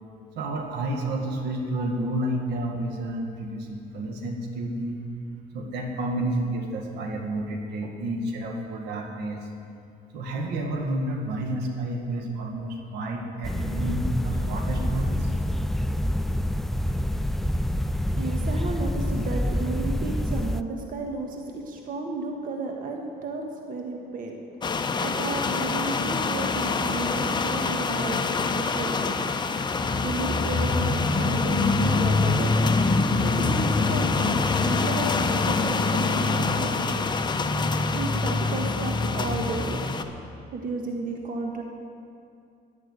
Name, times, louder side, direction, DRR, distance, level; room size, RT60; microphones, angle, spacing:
voice 1, 0.4-5.0 5.5-9.5 10.1-15.3, right 1 dB, 80° right, 2 dB, 1.9 m, -30 dB
sound 1, 13.4-20.6, left 1 dB, ahead, 0.3 m, -27 dB
voice 2, 17.9-24.3 24.9-28.2 28.5-29.1 30.0-32.7 33.2-37.0 37.9-39.9 40.5-41.6, right 3 dB, 55° right, 2 dB, 1.5 m, -33 dB
sound 2, 24.6-40.0, left 4 dB, 25° left, 0.8 m, -25 dB
11.5 x 10.5 x 8.1 m, 2.5 s
cardioid pair, 110°, 17 cm